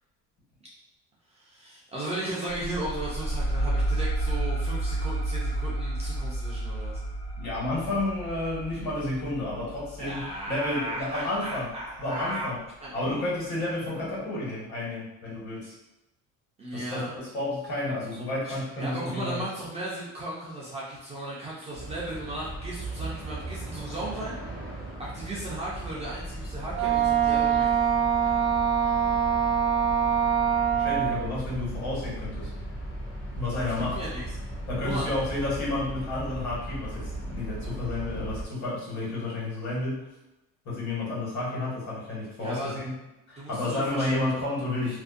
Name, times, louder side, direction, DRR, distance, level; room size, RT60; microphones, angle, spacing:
voice 1, 1.3-7.0 10.0-12.5 12.8-13.0 16.6-17.1 18.4-24.4 25.0-27.9 33.5-34.2 34.8-35.1 42.4-42.8 43.4-44.2, right 1 dB, 20° right, -7 dB, 0.4 m, -36 dB
sound 1, 2.5-11.7, right 1 dB, 85° left, 1.2 m, -31 dB
voice 2, 7.4-11.7 12.0-12.6 12.9-15.7 16.7-17.0 17.3-19.4 30.7-32.5 33.3-34.0 34.7-40.1 40.6-42.9 43.3-45.0, left 2 dB, 55° left, -6 dB, 1.3 m, -31 dB
sound 2, 21.7-38.5, right 1 dB, 35° left, 0.7 m, -37 dB
Wind instrument woodwind instrument, 26.7-31.3, right 8 dB, 75° right, 0.6 m, -24 dB
2.5 x 2.1 x 2.4 m, 0.96 s
cardioid pair, 150°, 33 cm